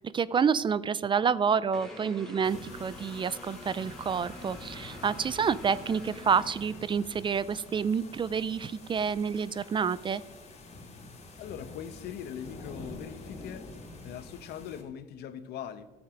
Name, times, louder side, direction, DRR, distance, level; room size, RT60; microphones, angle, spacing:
voice 1, 0.0-10.2, right 6 dB, 30° right, 18 dB, 0.3 m, -28 dB
sound 1, 1.7-7.3, left 1 dB, 5° left, 2.2 m, -48 dB
sound 2, 2.4-14.8, left 2 dB, 40° left, 2.7 m, -47 dB
voice 2, 11.4-13.7 14.0-15.9, left 9 dB, 75° left, 12 dB, 0.8 m, -41 dB
14.0 x 7.1 x 5.1 m, 1.3 s
cardioid pair, 110°, 17 cm